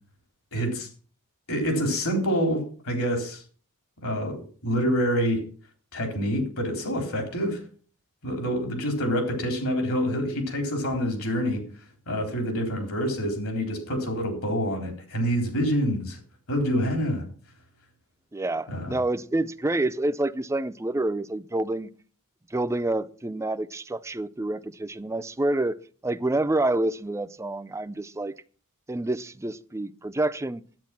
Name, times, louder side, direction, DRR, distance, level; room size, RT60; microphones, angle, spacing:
voice 1, 0.5-0.9 1.5-3.4 4.0-5.4 5.9-7.6 8.2-11.6 12.1-16.2 16.5-17.2 18.7-19.0, equal, 70° left, 3.9 m, -27 dB
voice 2, 18.3-21.9 22.5-25.8 26.0-28.3 28.9-30.6, right 2 dB, 15° right, 0.5 m, -28 dB
10.5 x 9.1 x 6.0 m
head